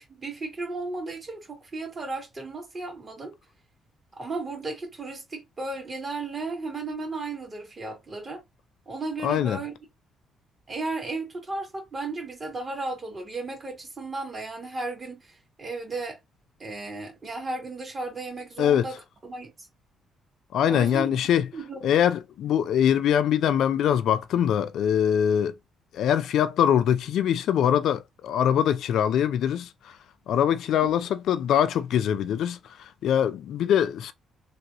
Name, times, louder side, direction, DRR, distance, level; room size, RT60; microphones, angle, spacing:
voice 1, 0.0-3.3 4.2-8.4 8.9-9.8 10.7-16.2 16.6-19.5 20.7-21.2 21.5-22.0 30.8-30.9, right 3 dB, 35° right, 2.0 m, -34 dB
voice 2, 9.2-9.6 18.6-18.9 20.5-21.5 21.8-25.5 25.9-30.0 30.3-34.1, left 9 dB, 75° left, 0.3 m, -23 dB
3.3 x 2.9 x 2.7 m
cardioid pair, 90°, 0 cm